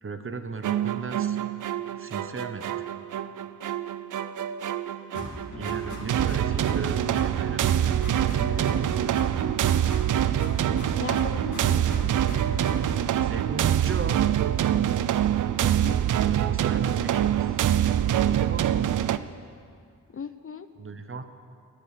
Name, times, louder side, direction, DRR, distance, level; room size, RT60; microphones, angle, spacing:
voice 1, 0.0-1.4 1.7-2.9 5.6-9.5 13.2-14.2 16.1-18.7 20.8-21.2, right 4 dB, 40° right, 9 dB, 0.9 m, -37 dB
sound 1, 0.6-19.2, right 11 dB, 65° right, 0.5 m, -25 dB
sound 2, 5.1-6.9 7.1-8.9 9.1-10.9 11.1-13.0, left 1 dB, 60° left, 2.8 m, -38 dB
voice 2, 10.9-12.2 15.5-16.1 20.1-20.7, left 6 dB, 40° left, 11 dB, 0.6 m, -38 dB
13.0 x 9.1 x 6.7 m, 2.2 s
cardioid pair, 55°, 34 cm